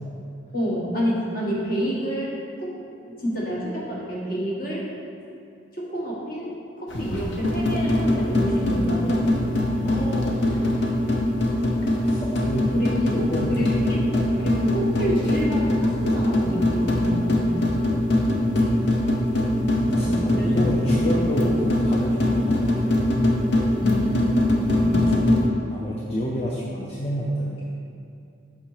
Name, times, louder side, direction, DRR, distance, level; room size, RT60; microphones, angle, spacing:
voice 1, 0.5-2.8 3.2-4.9 5.7-9.2 12.7-13.2 13.5-14.0 14.4-17.6 19.9-20.6 21.0-21.1 21.5-21.6 23.8-25.2, equal, 45° left, -5 dB, 1.3 m, -28 dB
sound 1, 6.9-25.5, left 1 dB, 65° left, 0.8 m, -22 dB
voice 2, 9.8-10.3 11.7-12.7 13.0-13.7 14.1-14.4 18.3-19.0 19.9-22.9 24.7-25.1 25.7-27.6, equal, 30° left, -4 dB, 0.5 m, -30 dB
5.9 x 4.3 x 4.7 m, 2.6 s
head